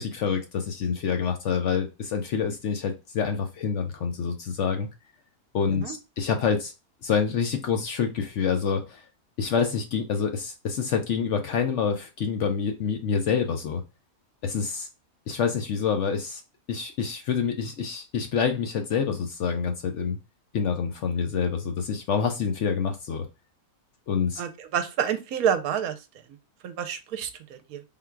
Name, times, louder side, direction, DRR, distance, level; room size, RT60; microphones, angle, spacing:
voice 1, 0.0-4.9 5.5-6.7 7.0-9.0 9.4-13.8 14.4-14.9 15.3-16.4 16.7-20.2 20.5-23.3 24.1-24.4, left 6 dB, 65° left, 5 dB, 0.8 m, -27 dB
voice 2, 24.4-26.0 26.6-27.8, right 8 dB, 75° right, 9 dB, 1.0 m, -28 dB
3.7 x 2.3 x 4.4 m, 0.27 s
omnidirectional pair, 1.6 m